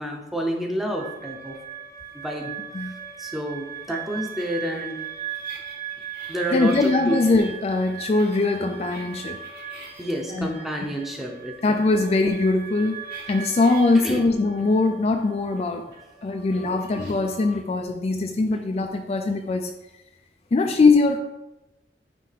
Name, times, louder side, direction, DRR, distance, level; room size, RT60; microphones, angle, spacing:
voice 1, 0.0-1.6 2.1-2.5 3.2-5.0 6.3-7.2 10.0-11.6 14.0-14.2 20.6-20.7, right 1 dB, ahead, 1 dB, 0.7 m, -29 dB
sound 1, 0.9-17.6, right 8 dB, 60° right, 2.3 m, -38 dB
voice 2, 6.5-9.4 10.3-10.6 11.6-13.0 13.3-15.8 16.2-19.7 20.5-21.2, left 3 dB, 35° left, 5 dB, 0.3 m, -21 dB
9.3 x 3.3 x 3.3 m, 0.97 s
head